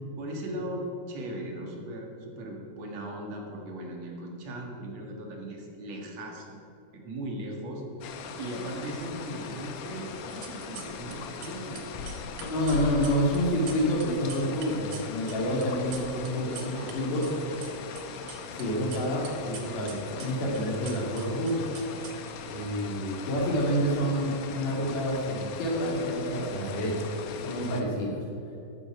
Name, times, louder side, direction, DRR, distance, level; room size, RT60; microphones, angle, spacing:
voice 1, 0.2-6.6 6.9-7.8 8.4-11.9 16.7-17.6, right 1 dB, 60° right, 0 dB, 2.9 m, -38 dB
sound 1, 8.0-27.8, left 5 dB, 70° left, 2.0 m, -40 dB
sound 2, 10.2-11.2 11.4-16.9 17.2-18.6 18.9-22.6, right 8 dB, 90° right, 2.8 m, -45 dB
voice 2, 12.4-17.3 18.5-21.7 22.4-28.2, equal, 85° left, -2 dB, 4.2 m, -28 dB
13.0 x 12.5 x 4.9 m, 2.9 s
omnidirectional pair, 3.6 m